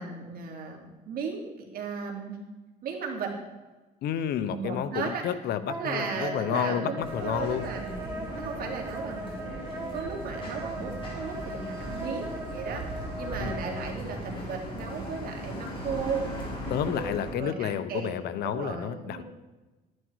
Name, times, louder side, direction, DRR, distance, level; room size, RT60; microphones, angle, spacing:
voice 1, 0.0-2.4 2.8-3.3 4.5-5.2 5.7-8.0 8.4-9.3 9.9-16.2 16.6-19.2, right 5 dB, 60° right, 1 dB, 2.8 m, -36 dB
voice 2, 4.0-7.7 13.4-13.6 16.7-19.2, left 9 dB, 70° left, 13 dB, 0.8 m, -30 dB
Wind instrument woodwind instrument, 5.7-13.9, right 2 dB, 15° right, 1.6 m, -39 dB
sound 1, 7.0-17.3, equal, 30° left, 4.1 m, -38 dB
11.5 x 10.5 x 4.7 m, 1.2 s
cardioid pair, 110°, 17 cm